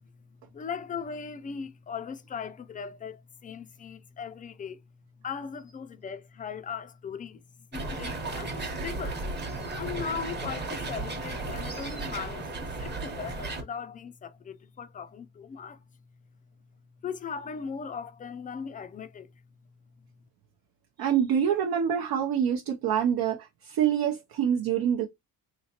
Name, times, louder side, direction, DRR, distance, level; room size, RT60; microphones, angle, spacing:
voice 1, 0.5-4.8 5.2-7.4 7.7-9.2 9.8-15.8 17.0-19.3, left 6 dB, 20° left, 0.3 m, -38 dB
sound 1, 7.7-13.6, right 2 dB, 25° right, 1.0 m, -34 dB
voice 2, 21.0-25.1, right 8 dB, 70° right, 0.7 m, -26 dB
4.1 x 3.1 x 2.8 m
cardioid pair, 155°, 39 cm